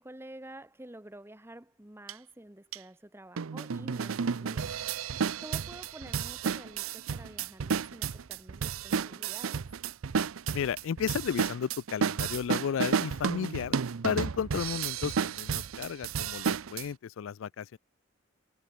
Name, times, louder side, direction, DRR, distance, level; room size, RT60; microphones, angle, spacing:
voice 1, 0.0-4.7 5.4-9.7, right 1 dB, 10° right, 1.0 m, -49 dB
sound 1, 2.1-2.2 2.7-2.8 3.4-16.8, right 6 dB, 85° right, 0.6 m, -32 dB
voice 2, 10.5-13.8 14.0-17.8, left 7 dB, 75° left, 0.4 m, -33 dB
head